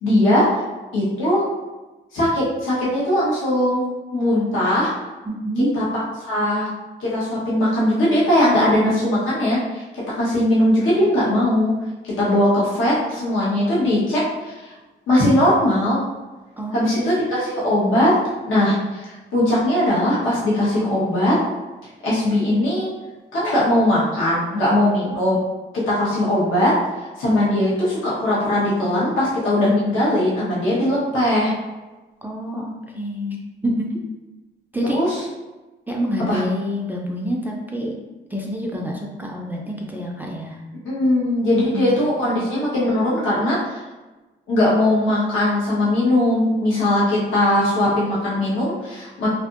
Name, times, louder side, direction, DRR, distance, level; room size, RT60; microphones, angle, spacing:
voice 1, 0.0-0.5 0.9-1.4 2.1-3.8 4.1-4.9 5.7-5.8 6.2-6.7 7.0-9.8 10.2-11.7 12.0-14.7 15.1-16.0 16.7-18.1 18.5-21.4 22.0-22.9 23.3-25.3 25.9-26.7 27.2-31.5 34.8-35.2 36.3-36.4 40.8-43.8 44.5-49.3, left 1 dB, 80° left, -7 dB, 1.0 m, -19 dB
voice 2, 5.3-5.7 16.6-17.2 24.7-24.8 32.2-33.9 34.7-35.0 35.9-38.0 38.3-40.6 41.5-42.0, equal, 10° right, -2 dB, 0.4 m, -27 dB
2.6 x 2.5 x 2.4 m, 1.2 s
cardioid pair, 90°, 20 cm